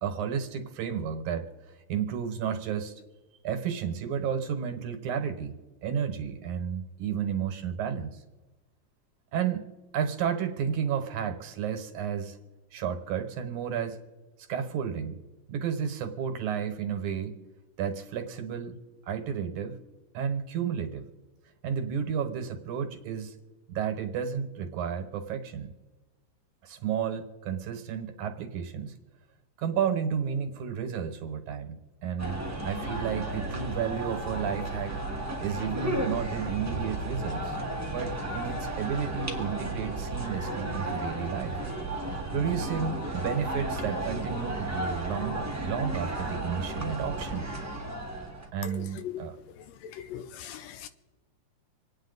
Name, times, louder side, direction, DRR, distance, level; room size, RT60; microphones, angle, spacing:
voice 1, 0.0-3.0 3.4-8.2 9.3-9.6 9.9-12.4 12.7-14.0 14.5-15.2 15.5-17.4 17.8-18.7 19.1-19.8 20.1-21.0 21.6-23.3 23.7-25.7 26.6-28.9 29.6-35.0 35.4-37.6 37.9-41.6 42.3-47.5 48.5-49.4, right 7 dB, 90° right, 6 dB, 2.7 m, -32 dB
sound 1, 32.2-48.5, right 1 dB, 10° right, 1.1 m, -33 dB
voice 2, 48.7-49.2 49.8-50.9, left 10 dB, 75° left, 12 dB, 1.6 m, -40 dB
27.0 x 9.4 x 4.0 m, 1.2 s
omnidirectional pair, 3.3 m